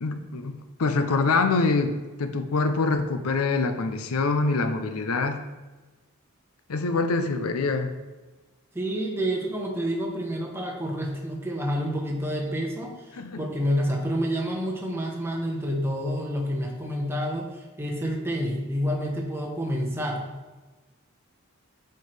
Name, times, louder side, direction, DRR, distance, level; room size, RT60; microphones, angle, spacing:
voice 1, 0.0-5.4 6.7-7.9 13.2-13.4, left 3 dB, 80° left, 8 dB, 0.6 m, -25 dB
voice 2, 8.7-20.2, equal, 10° right, -1 dB, 0.9 m, -28 dB
8.0 x 4.5 x 3.3 m, 1.2 s
head